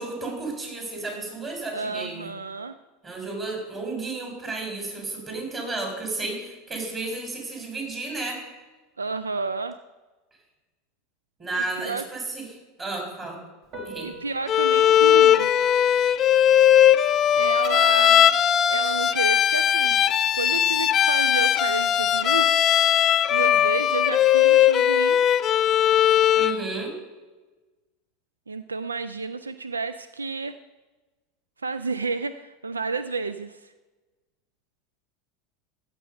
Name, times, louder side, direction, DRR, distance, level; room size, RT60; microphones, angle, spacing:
voice 1, 0.0-2.3 3.0-8.5 11.4-12.5 12.8-13.4 13.8-14.1 26.3-27.0, right 3 dB, 25° right, 2 dB, 4.2 m, -32 dB
voice 2, 1.7-2.8 9.0-9.8 11.6-12.0 14.0-15.6 17.3-18.3 18.7-20.0 20.3-22.5 23.3-25.2 28.5-30.5 31.6-33.7, right 4 dB, 85° right, 13 dB, 0.3 m, -31 dB
Piano, 13.6-21.6, right 2 dB, 50° right, 3.5 m, -49 dB
Bowed string instrument, 14.5-26.6, left 10 dB, 35° left, 0.4 m, -19 dB
15.5 x 6.8 x 5.3 m, 1.2 s
figure-of-eight pair, 80°, 0 cm